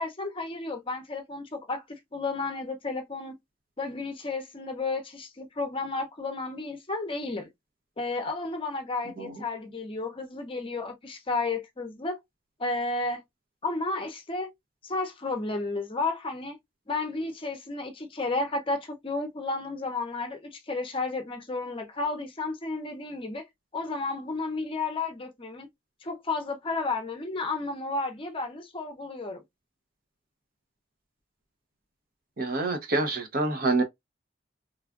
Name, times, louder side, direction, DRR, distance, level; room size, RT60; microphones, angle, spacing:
voice 1, 0.0-3.4 3.8-7.5 8.0-12.2 12.6-13.2 13.6-14.5 14.8-16.6 16.9-23.4 23.7-25.7 26.0-29.4, left 3 dB, 30° left, 0.6 m, -32 dB
voice 2, 32.4-33.8, right 3 dB, 55° right, 0.8 m, -27 dB
3.1 x 2.4 x 2.4 m
head